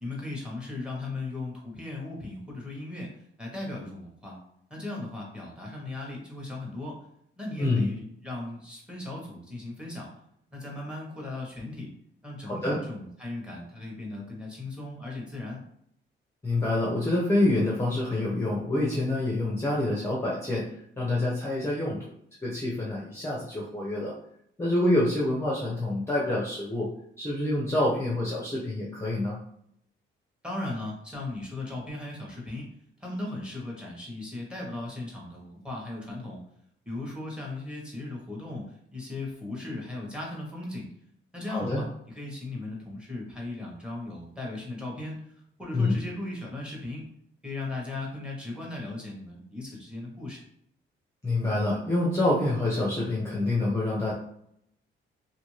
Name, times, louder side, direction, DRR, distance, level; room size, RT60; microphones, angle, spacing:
voice 1, 0.0-3.1 3.4-4.4 4.7-7.0 7.4-10.1 10.5-11.9 12.2-15.6 30.4-32.7 33.0-36.4 36.9-40.9 41.3-45.2 45.6-47.0 47.4-50.4, left 2 dB, 5° right, -2 dB, 1.0 m, -37 dB
voice 2, 7.6-7.9 12.5-12.8 16.4-20.6 21.0-22.0 22.4-24.1 24.6-26.9 27.2-29.4 41.5-41.8 45.7-46.0 51.2-54.1, left 1 dB, 15° left, -5 dB, 0.6 m, -26 dB
2.6 x 2.5 x 3.1 m, 0.72 s
cardioid pair, 130°, 21 cm